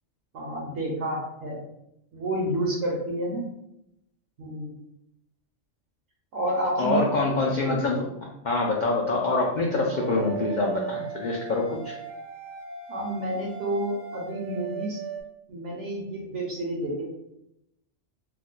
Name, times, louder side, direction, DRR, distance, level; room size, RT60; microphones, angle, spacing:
voice 1, 0.3-1.6 2.1-3.5 4.4-4.7 6.3-7.0 12.9-15.0 15.5-17.1, right 1 dB, 70° right, -4 dB, 1.0 m, -29 dB
voice 2, 6.8-8.1 8.4-12.0, left 3 dB, 75° left, -2 dB, 0.4 m, -25 dB
sound 1, 9.9-15.2, right 7 dB, 30° right, 0.5 m, -37 dB
2.6 x 2.1 x 3.7 m, 0.81 s
omnidirectional pair, 1.3 m